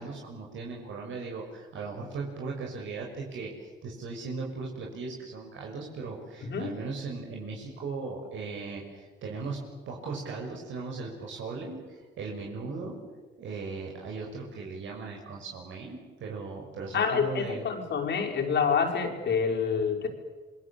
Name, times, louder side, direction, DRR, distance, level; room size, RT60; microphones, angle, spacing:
voice 1, 0.0-9.6 9.9-13.0 13.4-17.6, right 4 dB, 75° right, -1 dB, 6.3 m, -38 dB
voice 2, 6.4-6.8 16.9-20.1, left 6 dB, 60° left, 1 dB, 5.7 m, -27 dB
28.0 x 22.0 x 8.8 m, 1.3 s
cardioid pair, 90°, 20 cm